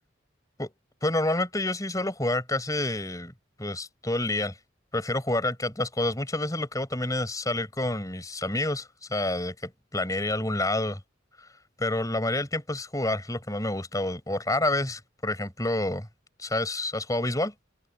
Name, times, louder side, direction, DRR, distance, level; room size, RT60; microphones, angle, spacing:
voice 1, 1.0-3.3 3.6-4.6 4.9-11.0 11.8-16.1 16.4-17.5, left 1 dB, 20° left, 6.0 m, -28 dB
head